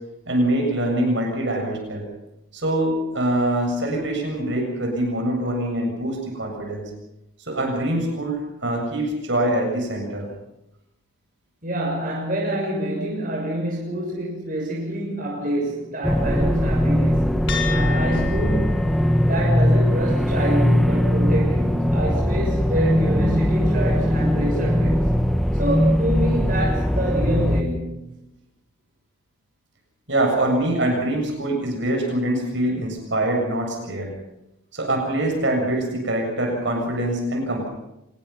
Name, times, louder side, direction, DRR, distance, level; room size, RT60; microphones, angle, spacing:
voice 1, 0.3-2.1 2.5-6.9 7.5-10.3 30.1-34.1 34.7-37.7, right 1 dB, 60° right, 1 dB, 7.4 m, -24 dB
voice 2, 11.6-18.8 19.2-25.2 25.5-28.1, right 1 dB, 40° right, -2 dB, 6.6 m, -27 dB
sound 1, 16.0-27.6, equal, ahead, 1.1 m, -20 dB
sound 2, 17.5-26.1, left 5 dB, 65° left, 5.0 m, -37 dB
25.5 x 20.5 x 5.9 m, 0.88 s
head